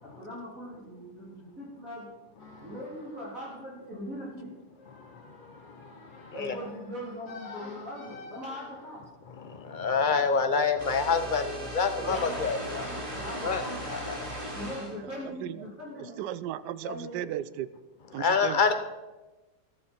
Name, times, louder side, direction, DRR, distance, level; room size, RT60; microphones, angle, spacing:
voice 1, 0.0-2.1 2.6-4.5 6.3-9.0 12.0-14.0 14.4-16.2 16.8-17.3, left 1 dB, 45° right, -6 dB, 4.0 m, -40 dB
sound 1, 2.4-9.0, left 3 dB, 60° left, 3.0 m, -50 dB
voice 2, 5.0-6.6 9.4-12.6 13.4-13.6 13.9-14.2 18.1-18.7, left 5 dB, 40° left, 8 dB, 0.7 m, -28 dB
sound 2, 10.8-14.9, right 1 dB, 15° right, 3.0 m, -37 dB
voice 3, 16.2-17.7 18.1-18.6, right 12 dB, 75° right, 16 dB, 1.1 m, -35 dB
14.0 x 13.0 x 4.4 m, 1.1 s
omnidirectional pair, 2.0 m